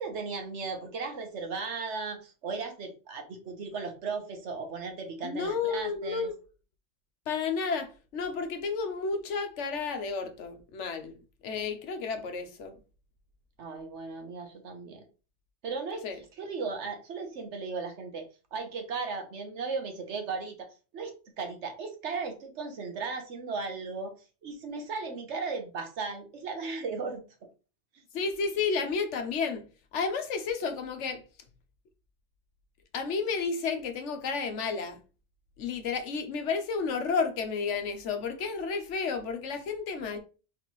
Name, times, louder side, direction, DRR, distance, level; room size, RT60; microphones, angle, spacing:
voice 1, 0.0-6.3 13.6-15.0 15.6-16.0 16.4-18.3 18.5-24.1 24.4-27.2, right 4 dB, 75° right, 1.3 m, -36 dB
voice 2, 5.2-6.3 7.3-11.2 11.4-12.7 16.0-16.2 28.1-29.7 29.9-31.2 32.9-35.0 35.6-40.2, left 5 dB, 80° left, 1.1 m, -31 dB
4.2 x 4.0 x 3.0 m
omnidirectional pair, 1.2 m